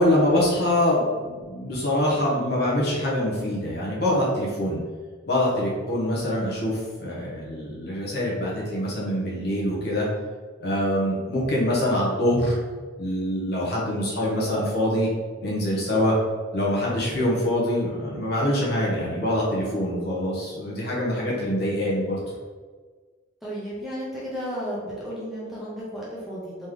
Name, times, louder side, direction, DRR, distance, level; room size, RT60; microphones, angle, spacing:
voice 1, 0.0-4.8 5.3-10.1 10.6-12.6 13.0-15.1 15.4-16.1 16.5-22.2, left 1 dB, 55° left, -5 dB, 1.3 m, -24 dB
voice 2, 21.1-21.5 23.4-26.7, equal, ahead, -8 dB, 1.1 m, -34 dB
4.0 x 3.3 x 3.8 m, 1.5 s
head